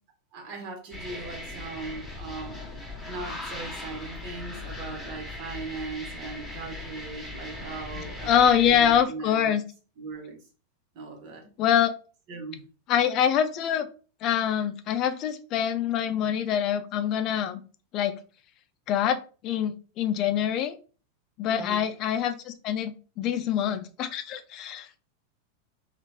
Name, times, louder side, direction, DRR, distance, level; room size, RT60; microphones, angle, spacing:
voice 1, 0.3-9.5 10.0-10.4 10.9-11.5 12.3-12.6 21.5-21.9, right 3 dB, 55° right, 1.1 m, -39 dB
sound 1, 0.9-9.0, left 2 dB, 10° left, 1.0 m, -39 dB
voice 2, 8.3-9.6 11.6-11.9 12.9-13.9 14.2-17.6 17.9-18.1 18.9-20.7 21.4-24.9, left 9 dB, 45° left, 0.4 m, -25 dB
2.9 x 2.4 x 2.2 m
hypercardioid pair, 110°, 0 cm